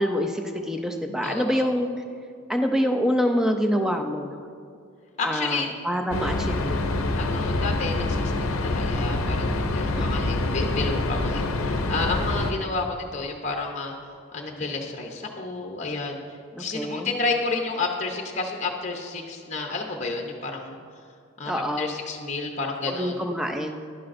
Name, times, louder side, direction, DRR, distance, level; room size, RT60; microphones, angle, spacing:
voice 1, 0.0-1.9 2.5-4.4 5.2-7.2 9.9-10.2 16.6-17.1 21.5-22.0 22.9-23.8, equal, 5° right, 4 dB, 0.4 m, -26 dB
voice 2, 1.2-1.7 5.2-5.7 7.2-21.0 21.4-23.2, left 3 dB, 35° left, 2 dB, 0.7 m, -31 dB
sound 1, 6.1-12.5, left 2 dB, 75° left, 0.6 m, -26 dB
11.0 x 10.0 x 2.6 m, 2.3 s
head